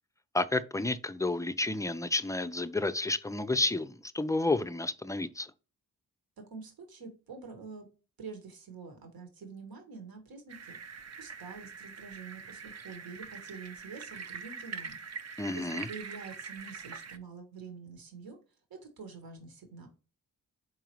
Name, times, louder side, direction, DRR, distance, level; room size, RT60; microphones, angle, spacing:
voice 1, 0.3-5.5 15.4-15.9, left 2 dB, 10° left, 0.4 m, -31 dB
voice 2, 6.5-7.9 8.2-15.0 15.5-18.4 18.7-19.9, right 4 dB, 70° right, 1.4 m, -47 dB
sound 1, 10.5-17.2, right 5 dB, 45° right, 0.6 m, -44 dB
4.7 x 3.7 x 3.0 m
supercardioid pair, 50°, 37 cm